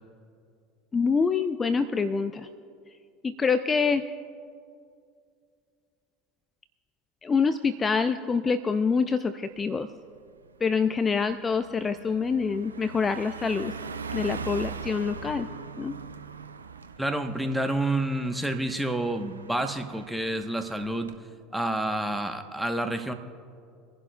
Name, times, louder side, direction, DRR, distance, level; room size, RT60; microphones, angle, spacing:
voice 1, 0.9-2.5 3.2-4.0 7.2-9.9 10.6-13.7 14.1-15.5 15.8-16.0, left 5 dB, 25° left, 12 dB, 0.5 m, -26 dB
Car passing by, 9.6-9.8 10.2-21.2, right 5 dB, 85° right, 0.5 m, -41 dB
voice 2, 17.0-21.1 21.5-23.1, right 1 dB, 5° right, 6 dB, 1.1 m, -29 dB
26.5 x 11.0 x 2.3 m, 2.3 s
hypercardioid pair, 75°, 0 cm